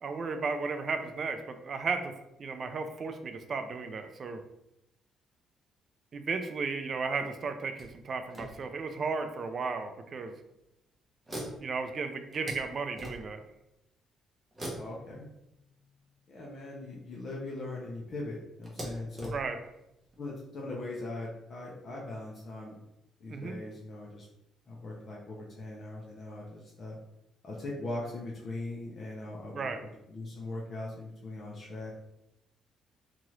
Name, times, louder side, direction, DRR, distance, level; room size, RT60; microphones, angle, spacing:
voice 1, 0.0-2.1 2.4-4.4 6.1-10.3 11.6-13.4 19.3-19.6 23.3-23.6 29.5-29.8, right 4 dB, 40° right, 7 dB, 0.3 m, -34 dB
sound 1, 7.8-9.1 9.9-10.0 10.3-10.5 11.2-13.6 14.5-16.2 17.3-17.4 17.7-17.8 18.6-20.3, equal, 15° right, 0.8 m, -44 dB
voice 2, 14.7-15.3 16.3-19.3 20.2-22.7 23.2-24.3 24.7-27.0 27.4-31.9, left 2 dB, 40° left, -4 dB, 0.6 m, -40 dB
2.9 x 2.4 x 3.0 m, 0.85 s
cardioid pair, 130°, 0 cm